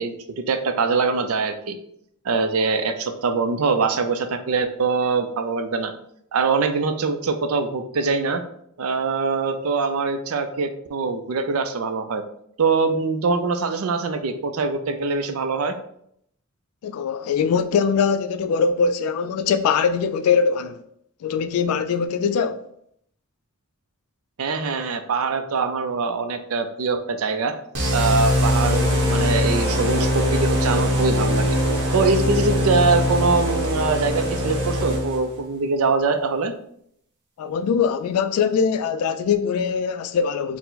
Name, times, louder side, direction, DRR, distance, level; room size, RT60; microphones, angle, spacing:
voice 1, 0.0-1.8 2.2-5.9 6.3-8.4 8.8-12.2 12.6-15.8 24.4-27.5 27.9-31.6 31.9-36.5, right 4 dB, 80° right, 0.5 m, -23 dB
voice 2, 16.8-20.8 21.2-22.7 37.4-40.6, left 6 dB, 85° left, 0.3 m, -22 dB
sound 1, 27.7-35.4, left 1 dB, 55° right, 1.2 m, -22 dB
4.5 x 2.1 x 3.9 m
head